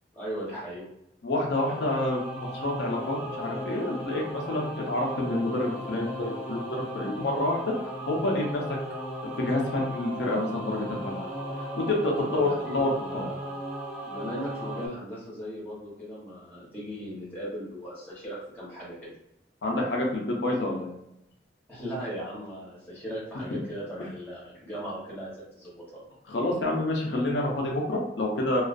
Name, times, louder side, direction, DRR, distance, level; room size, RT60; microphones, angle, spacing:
voice 1, 0.1-0.9 12.2-13.4 14.0-19.1 21.7-26.0, equal, 10° left, -8 dB, 0.9 m, -38 dB
voice 2, 1.2-7.7 8.1-8.6 9.4-11.3 11.8-13.2 19.6-20.9 26.3-28.6, left 1 dB, 80° left, -1 dB, 0.5 m, -28 dB
Singing / Musical instrument, 1.5-14.9, equal, 5° right, 0.5 m, -37 dB
2.3 x 2.2 x 2.5 m, 0.80 s
head